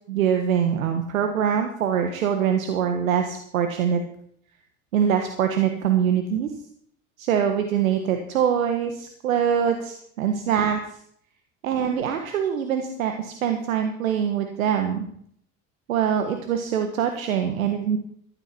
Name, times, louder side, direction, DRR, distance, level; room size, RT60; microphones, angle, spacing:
voice 1, 0.1-4.0 4.9-6.5 7.2-10.8 11.6-15.1 15.9-18.0, right 8 dB, 90° right, 6 dB, 1.6 m, -23 dB
15.0 x 12.0 x 4.5 m, 0.64 s
hypercardioid pair, 85°, 40 cm